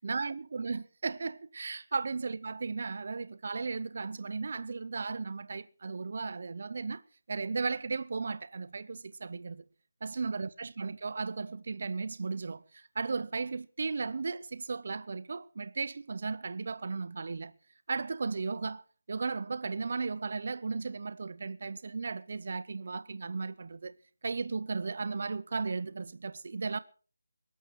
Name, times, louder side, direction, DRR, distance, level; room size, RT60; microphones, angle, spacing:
voice 1, 0.0-7.0 7.3-9.6 10.0-17.5 17.9-23.9 24.2-26.8, right 4 dB, 35° right, 0.6 m, -35 dB
21.0 x 12.0 x 4.6 m
figure-of-eight pair, 175°, 0 cm